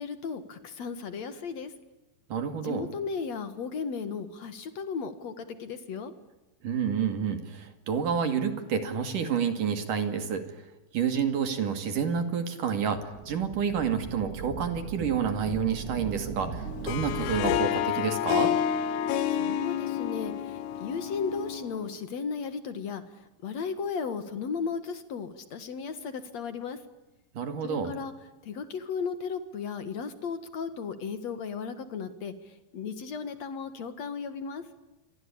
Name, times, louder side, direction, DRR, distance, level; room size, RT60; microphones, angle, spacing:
voice 1, 0.0-1.7 2.6-6.1 19.3-26.8 27.6-28.1 28.4-34.7, left 5 dB, 60° left, 11 dB, 1.8 m, -35 dB
voice 2, 2.3-2.9 6.6-10.6 10.9-18.5 27.3-27.9, right 7 dB, 50° right, 8 dB, 3.3 m, -29 dB
sound 1, 12.9-17.6, right 6 dB, 90° right, 5.0 m, -39 dB
Harp, 16.7-21.9, left 10 dB, 85° left, 3.9 m, -29 dB
28.5 x 24.0 x 8.8 m, 1.0 s
omnidirectional pair, 5.6 m